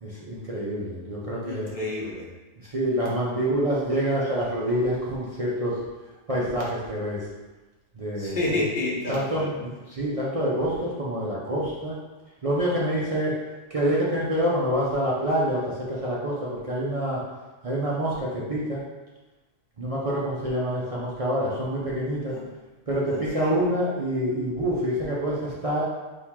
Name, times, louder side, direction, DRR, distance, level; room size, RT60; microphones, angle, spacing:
voice 1, 0.0-1.7 2.7-5.8 6.3-7.3 7.9-8.4 9.1-12.0 12.4-13.4 13.7-17.2 17.6-18.8 19.8-22.3 22.9-25.8, equal, 40° right, -6 dB, 0.5 m, -26 dB
voice 2, 1.5-2.3 8.2-9.5 22.3-22.4 23.1-23.5, left 2 dB, 40° left, -4 dB, 0.9 m, -30 dB
4.5 x 2.7 x 3.6 m, 1.2 s
omnidirectional pair, 1.4 m